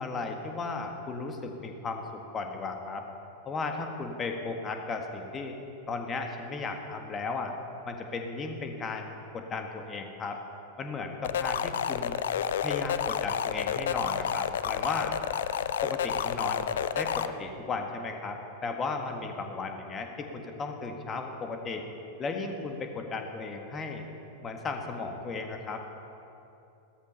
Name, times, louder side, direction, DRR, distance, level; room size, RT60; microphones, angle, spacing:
voice 1, 0.0-2.0 2.3-3.1 3.4-5.5 5.9-7.5 7.8-10.4 10.8-12.2 12.6-15.2 15.8-16.7 16.9-21.8 22.2-24.0 24.4-25.9, left 4 dB, 25° left, 4 dB, 1.7 m, -35 dB
sound 1, 11.2-17.3, left 8 dB, 60° left, 0.5 m, -30 dB
15.0 x 13.5 x 5.6 m, 2.9 s
figure-of-eight pair, 90°, 0 cm